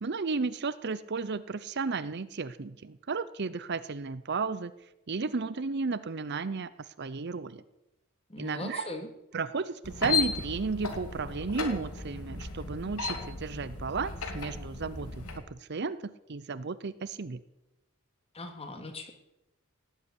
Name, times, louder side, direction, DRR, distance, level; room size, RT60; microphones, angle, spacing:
voice 1, 0.0-4.7 5.1-6.7 7.0-7.6 8.4-8.9 9.3-17.4, right 4 dB, 50° right, 16 dB, 0.6 m, -33 dB
voice 2, 8.3-9.1 18.3-19.1, left 2 dB, 25° left, 5 dB, 2.4 m, -39 dB
sound 1, 9.8-15.4, left 4 dB, 85° left, 2.8 m, -35 dB
18.0 x 8.2 x 9.8 m, 0.94 s
head